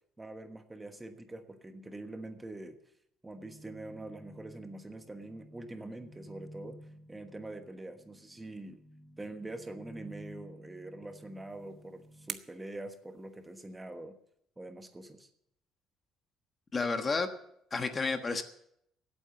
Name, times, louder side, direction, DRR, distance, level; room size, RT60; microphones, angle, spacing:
voice 1, 0.2-2.8 3.2-6.8 7.1-8.8 9.2-14.1 14.6-15.3, right 2 dB, 15° right, 7 dB, 1.3 m, -44 dB
sound 1, 3.3-12.3, equal, 45° left, 3.9 m, -53 dB
sound 2, 11.2-13.9, right 8 dB, 50° right, 1.0 m, -48 dB
voice 2, 16.7-17.3 17.7-18.4, left 4 dB, 25° left, 8 dB, 1.3 m, -31 dB
16.5 x 8.8 x 7.0 m, 0.73 s
cardioid pair, 115°, 0 cm